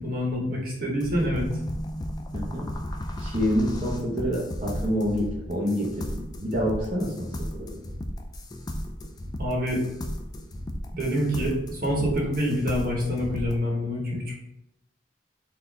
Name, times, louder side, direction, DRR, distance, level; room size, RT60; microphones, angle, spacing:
voice 1, 0.0-1.6 9.4-9.8 10.9-14.3, equal, 50° right, -3 dB, 1.2 m, -26 dB
sound 1, 1.0-13.6, equal, 20° left, 0.3 m, -35 dB
voice 2, 2.3-2.7 3.2-7.8, equal, 30° right, -8 dB, 0.8 m, -27 dB
4.1 x 2.8 x 3.4 m, 0.85 s
head